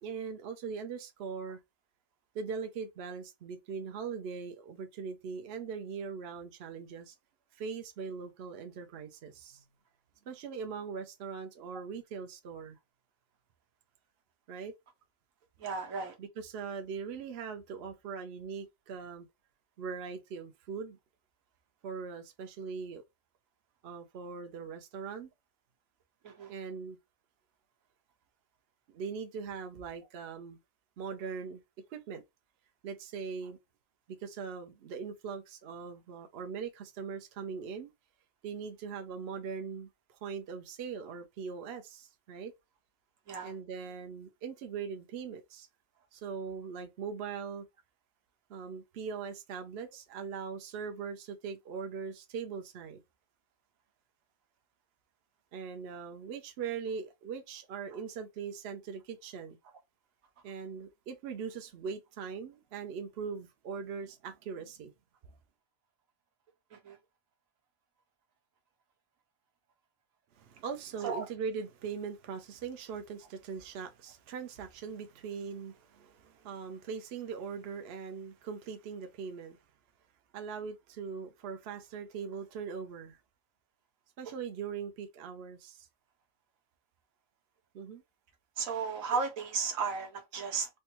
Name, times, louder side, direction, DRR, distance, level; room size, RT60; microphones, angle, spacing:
voice 1, 0.0-1.6 2.3-7.1 7.5-9.7 10.3-12.8 14.5-14.7 16.2-19.3 19.8-21.0 21.8-23.0 23.8-25.3 26.5-27.0 28.9-30.6 31.0-31.6 31.9-32.2 32.8-33.6 34.1-37.9 38.4-42.5 43.4-45.7 46.1-47.7 48.5-53.0 55.5-59.6 60.4-64.9 70.3-79.6 80.3-83.2 84.2-85.9 87.7-88.0, right 6 dB, 60° right, 0.7 m, -41 dB
voice 2, 15.6-16.1 26.2-26.5 43.3-43.5 66.7-67.0 71.0-71.3 88.6-90.7, right 5 dB, 75° right, 1.3 m, -34 dB
3.3 x 2.2 x 2.9 m
omnidirectional pair, 1.4 m